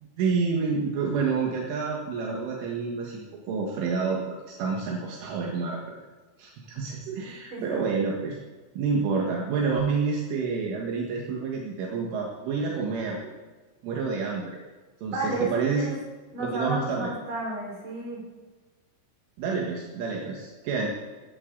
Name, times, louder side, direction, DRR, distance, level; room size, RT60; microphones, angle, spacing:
voice 1, 0.0-6.0 6.4-8.4 8.8-13.3 13.8-14.6 15.0-16.0 16.4-17.1 19.4-20.9, right 5 dB, 75° right, -2 dB, 4.2 m, -28 dB
voice 2, 15.1-16.0 16.3-18.2, right 2 dB, 40° right, -3 dB, 6.3 m, -32 dB
18.0 x 16.0 x 4.0 m, 1.3 s
omnidirectional pair, 5.7 m